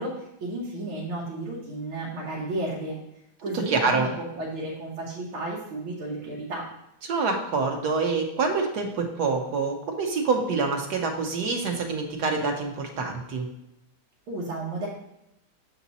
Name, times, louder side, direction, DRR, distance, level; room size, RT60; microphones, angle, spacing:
voice 1, 0.0-3.0 3.4-6.7 14.3-14.9, right 1 dB, 90° right, -5 dB, 2.0 m, -33 dB
voice 2, 3.5-4.1 7.1-13.5, right 4 dB, 60° right, 4 dB, 1.3 m, -26 dB
7.1 x 4.2 x 4.1 m, 0.87 s
omnidirectional pair, 2.2 m